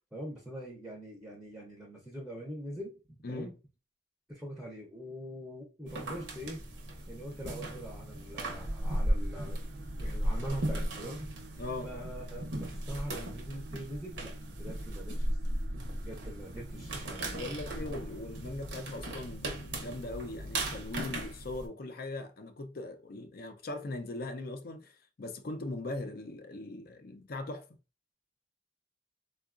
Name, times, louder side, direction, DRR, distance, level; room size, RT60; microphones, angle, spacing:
voice 1, 0.1-3.5 4.3-6.6 7.1-9.6 9.9-11.5 11.8-15.3 16.0-17.5, right 1 dB, 5° right, 0.6 m, -43 dB
sound 1, 5.9-21.7, right 1 dB, 75° right, 0.8 m, -36 dB
sound 2, 8.6-19.2, right 3 dB, 60° right, 0.3 m, -53 dB
voice 2, 11.6-11.9 17.3-27.7, left 2 dB, 55° left, 0.5 m, -40 dB
3.7 x 2.3 x 2.4 m
head